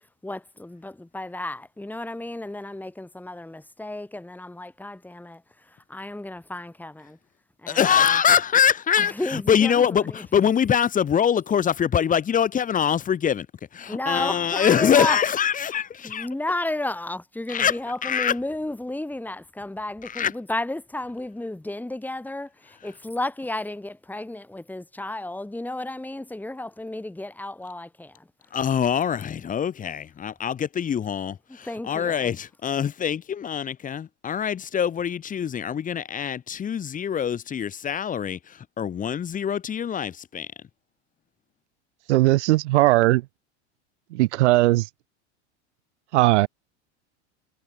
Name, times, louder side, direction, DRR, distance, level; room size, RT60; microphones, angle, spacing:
voice 1, 0.2-5.4 5.7-7.2 7.6-8.2 9.0-10.1 13.9-15.2 16.0-28.2 31.6-32.3, left 2 dB, 5° left, 4.3 m, -33 dB
voice 2, 7.7-13.5 13.7-16.3 17.5-18.4 20.0-20.3 28.5-40.5, left 8 dB, 25° left, 1.0 m, -24 dB
voice 3, 42.1-43.2 44.1-44.9 46.1-46.5, right 18 dB, 75° right, 0.8 m, -18 dB
hypercardioid pair, 100°, 35 cm